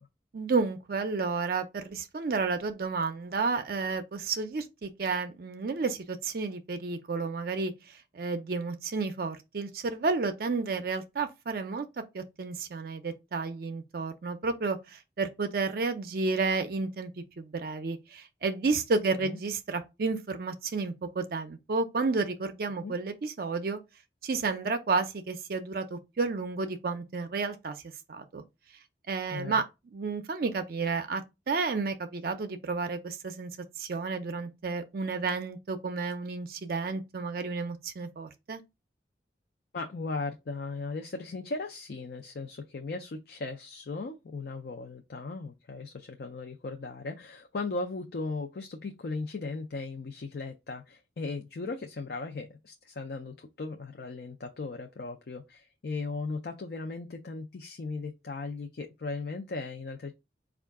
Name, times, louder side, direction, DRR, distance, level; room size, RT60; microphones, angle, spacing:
voice 1, 0.3-11.9 12.1-17.1 17.4-23.8 24.2-27.8 28.1-28.4 29.1-29.7 29.9-33.5 33.8-38.6, right 4 dB, 55° right, 0.4 m, -31 dB
voice 2, 29.3-29.6 39.7-60.1, left 3 dB, 60° left, 0.4 m, -37 dB
4.5 x 2.4 x 3.4 m
head